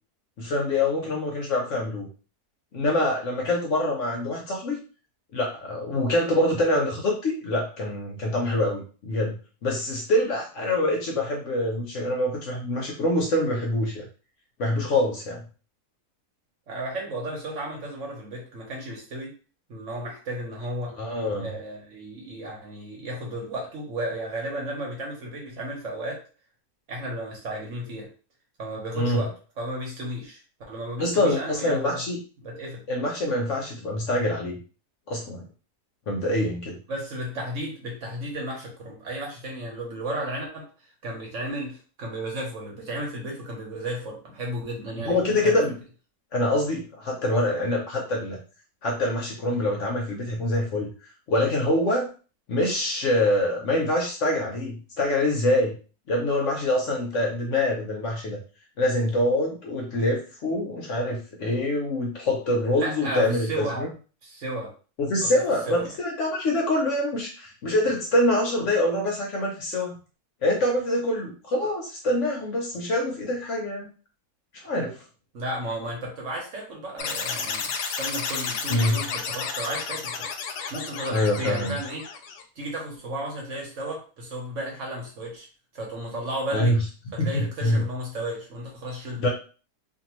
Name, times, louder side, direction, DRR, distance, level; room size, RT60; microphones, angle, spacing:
voice 1, 0.4-2.1 2.7-4.8 5.3-14.1 14.6-15.4 21.0-21.5 28.9-29.2 31.0-32.2 32.9-34.6 35.1-35.4 36.1-36.8 45.0-45.8 46.3-48.4 48.8-52.1 52.5-55.8 56.1-58.4 58.8-63.9 65.0-70.0 70.4-73.9 74.5-75.0 78.7-79.0 81.1-81.8 86.5-86.8 87.2-87.8 89.2-89.3, left 1 dB, 60° left, 0 dB, 0.9 m, -25 dB
voice 2, 16.7-19.3 19.7-21.0 21.4-26.2 26.9-28.1 28.6-30.4 30.7-32.0 32.4-32.8 36.9-40.7 41.0-45.6 62.8-63.8 64.2-64.7 65.2-65.3 65.7-65.8 75.3-80.1 80.7-82.1 82.6-85.5 85.7-86.7 87.1-89.2, right 1 dB, 55° right, -1 dB, 1.2 m, -33 dB
sound 1, 77.0-82.4, left 6 dB, 80° left, 1.1 m, -32 dB
2.6 x 2.6 x 3.0 m, 0.37 s
omnidirectional pair, 1.7 m